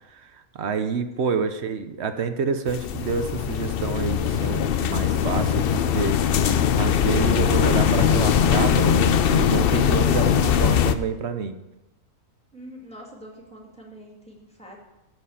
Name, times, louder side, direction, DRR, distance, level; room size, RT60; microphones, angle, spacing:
voice 1, 0.1-11.6, right 5 dB, 55° right, 9 dB, 0.9 m, -28 dB
sound 1, 2.7-10.9, left 8 dB, 90° left, 0.5 m, -21 dB
voice 2, 12.5-14.8, equal, 5° left, -2 dB, 2.2 m, -44 dB
13.0 x 4.5 x 8.4 m, 0.97 s
omnidirectional pair, 1.6 m